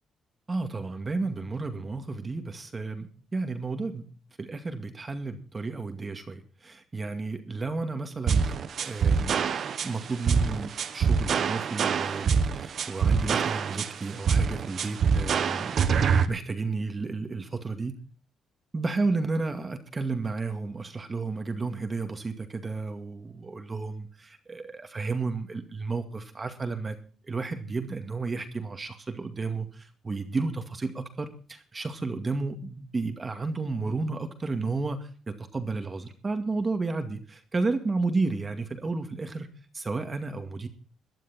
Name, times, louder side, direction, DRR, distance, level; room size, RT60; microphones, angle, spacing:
voice 1, 0.5-4.1 4.4-8.5 8.8-9.5 9.8-15.8 16.3-18.0 18.7-27.0 27.2-39.5 39.7-40.7, right 3 dB, 30° right, 6 dB, 2.1 m, -32 dB
sound 1, 8.3-16.3, right 6 dB, 60° right, 1.3 m, -25 dB
18.0 x 11.5 x 4.3 m, 0.41 s
cardioid pair, 90°, 0 cm